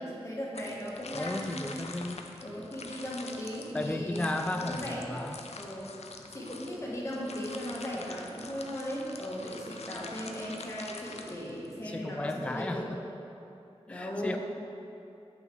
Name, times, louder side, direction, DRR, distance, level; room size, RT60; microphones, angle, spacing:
voice 1, 0.0-1.6 2.4-5.1 5.5-5.9 6.3-13.0 13.9-14.4, equal, 25° left, -5 dB, 1.7 m, -37 dB
sound 1, 0.5-11.9, left 4 dB, 75° left, 0.5 m, -46 dB
voice 2, 1.1-2.2 3.7-5.4 11.8-13.0 13.9-14.4, left 1 dB, 10° left, 6 dB, 0.3 m, -34 dB
8.1 x 5.9 x 4.7 m, 2.8 s
wide cardioid pair, 90°, 11 cm